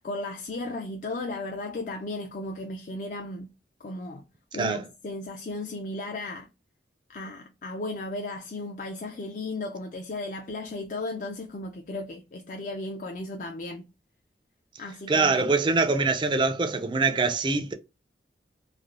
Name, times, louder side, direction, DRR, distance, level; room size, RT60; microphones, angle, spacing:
voice 1, 0.0-3.5 3.8-4.2 4.5-6.5 7.1-13.8 14.8-15.4, left 2 dB, 45° left, 0.4 m, -35 dB
voice 2, 15.1-17.7, right 4 dB, 25° right, 0.3 m, -24 dB
3.2 x 2.4 x 2.4 m
head